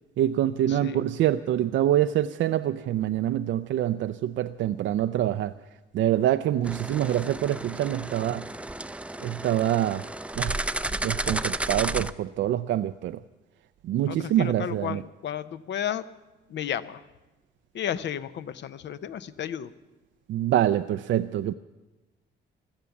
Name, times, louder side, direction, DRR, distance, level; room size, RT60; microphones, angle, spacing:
voice 1, 0.2-5.5 5.9-8.5 9.2-10.1 10.4-10.6 11.0-13.2 13.8-15.0 20.3-21.5, right 12 dB, 70° right, 10 dB, 0.5 m, -25 dB
voice 2, 0.7-1.0 14.1-16.0 16.5-17.0 17.7-19.7, left 9 dB, 65° left, 14 dB, 0.7 m, -33 dB
sound 1, 6.6-12.1, right 1 dB, 5° right, 0.4 m, -32 dB
16.0 x 12.5 x 7.1 m, 1.1 s
cardioid pair, 90°, 20 cm